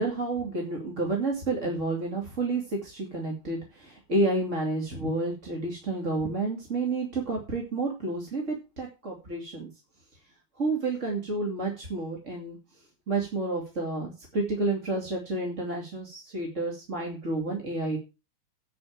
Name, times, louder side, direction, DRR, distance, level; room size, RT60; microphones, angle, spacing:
voice 1, 0.0-9.7 10.6-12.6 13.1-18.0, right 2 dB, 25° right, 0 dB, 2.1 m, -30 dB
9.4 x 7.0 x 7.3 m, 0.30 s
omnidirectional pair, 4.4 m